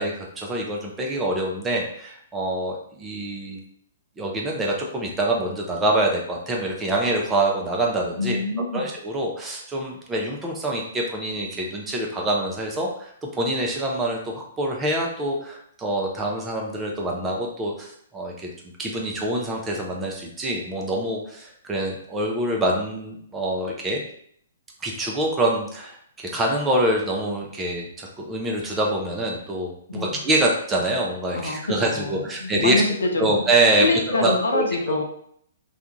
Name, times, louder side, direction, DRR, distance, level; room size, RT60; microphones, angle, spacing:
voice 1, 0.0-3.6 4.2-8.4 8.7-18.5 18.8-24.0 24.8-32.8 33.2-35.0, right 1 dB, 15° right, -1 dB, 0.5 m, -25 dB
voice 2, 8.2-8.9 29.9-30.2 31.3-31.6 31.9-33.4 33.8-35.0, left 2 dB, 70° left, 3 dB, 0.4 m, -25 dB
2.4 x 2.2 x 2.9 m, 0.66 s
figure-of-eight pair, 120°, 0 cm